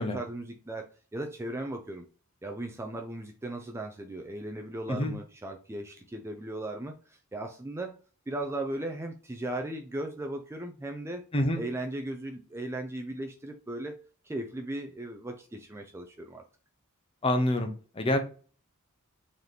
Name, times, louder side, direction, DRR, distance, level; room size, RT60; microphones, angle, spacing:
voice 1, 0.0-2.1 2.4-7.9 8.3-11.2 11.6-16.4, right 1 dB, 10° right, 0.3 m, -37 dB
voice 2, 17.2-17.7 18.0-18.2, left 1 dB, 25° left, 0.6 m, -26 dB
3.9 x 2.8 x 3.3 m
head